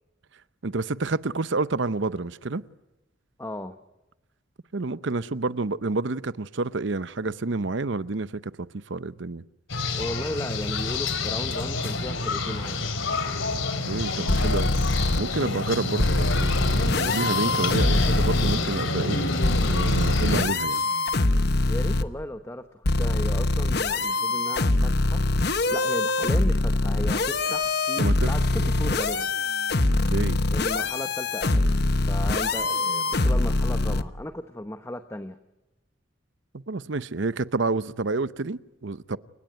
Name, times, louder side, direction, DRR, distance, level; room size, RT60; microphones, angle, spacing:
voice 1, 0.6-2.6 4.7-9.4 13.9-14.7 15.2-19.2 19.7-20.8 28.0-28.3 28.5-28.9 30.1-30.4 36.5-39.2, right 3 dB, 65° right, 0.8 m, -29 dB
voice 2, 3.4-3.8 9.9-12.8 21.7-25.2 25.7-29.3 30.5-31.7 32.1-35.4, left 1 dB, 15° left, 0.9 m, -35 dB
sound 1, 9.7-20.4, left 3 dB, 70° left, 3.1 m, -28 dB
sound 2, 14.3-15.2 16.0-18.6 19.4-22.0 22.8-34.0, left 2 dB, 50° left, 1.1 m, -24 dB
29.0 x 17.0 x 9.3 m
head